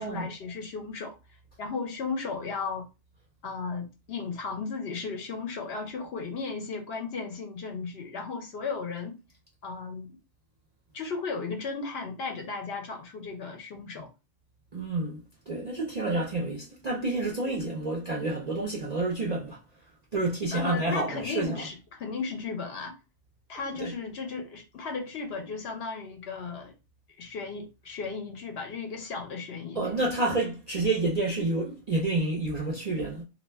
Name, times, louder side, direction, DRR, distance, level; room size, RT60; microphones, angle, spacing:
voice 1, 0.0-2.9 3.4-9.2 9.6-10.2 10.9-14.1 20.5-23.0 23.5-26.7 27.2-30.0, left 4 dB, 65° left, 0.7 m, -35 dB
voice 2, 14.7-19.6 20.1-21.6 23.8-23.9 29.8-33.2, right 2 dB, 55° right, 0.4 m, -29 dB
2.4 x 2.2 x 3.3 m
omnidirectional pair, 1.4 m